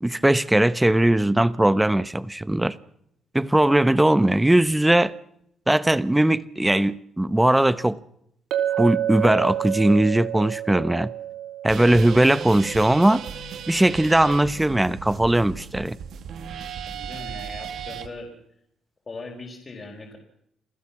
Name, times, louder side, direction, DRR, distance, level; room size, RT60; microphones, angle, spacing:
voice 1, 0.0-2.8 3.3-5.1 5.7-8.0 8.8-11.1 11.6-13.2 13.7-16.0, right 1 dB, 10° right, 1.0 m, -19 dB
Chink clink, 8.5-12.7, right 11 dB, 85° right, 2.8 m, -29 dB
sound 1, 11.7-18.1, right 7 dB, 65° right, 2.1 m, -36 dB
voice 2, 16.8-18.3 19.1-20.2, left 3 dB, 30° left, 4.8 m, -39 dB
27.5 x 15.5 x 7.3 m
cardioid pair, 90°, 0 cm